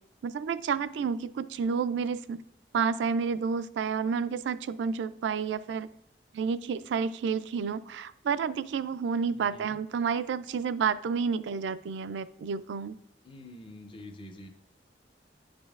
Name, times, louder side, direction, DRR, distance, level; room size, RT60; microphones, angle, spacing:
voice 1, 0.2-2.4 2.7-5.9 6.3-13.0, right 6 dB, 75° right, 14 dB, 0.3 m, -30 dB
voice 2, 9.4-9.8 13.2-14.5, left 1 dB, 30° left, 5 dB, 0.5 m, -46 dB
9.9 x 5.1 x 2.4 m, 0.77 s
head